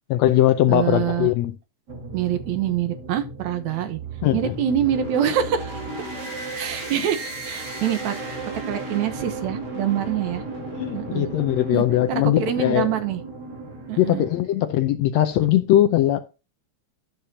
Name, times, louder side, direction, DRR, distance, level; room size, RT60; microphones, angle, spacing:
voice 1, 0.1-1.5 4.2-4.5 10.7-12.9 14.0-16.2, left 13 dB, 75° left, 1.7 m, -20 dB
voice 2, 0.7-1.3 2.1-4.0 4.3-5.8 6.5-8.1 8.7-10.4 10.9-11.3 11.7-13.2 13.9-14.3, right 9 dB, 70° right, 2.3 m, -25 dB
sound 1, 1.9-14.4, right 2 dB, 35° right, 2.7 m, -35 dB
12.0 x 7.0 x 2.8 m
omnidirectional pair, 3.5 m